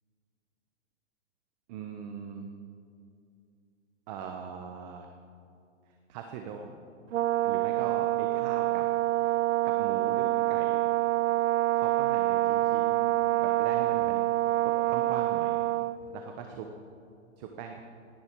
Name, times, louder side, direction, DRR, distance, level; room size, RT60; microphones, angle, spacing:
voice 1, 1.7-2.5 4.1-5.1 6.1-6.8 7.5-8.8 9.2-9.3 9.6-10.9 11.7-13.1 13.4-14.2 14.9-15.7 16.1-16.7 17.4-17.8, right 6 dB, 35° right, 4 dB, 1.0 m, -40 dB
Brass instrument, 7.1-16.0, right 18 dB, 75° right, 0.5 m, -26 dB
18.0 x 10.5 x 4.7 m, 2.5 s
hypercardioid pair, 145°, 38 cm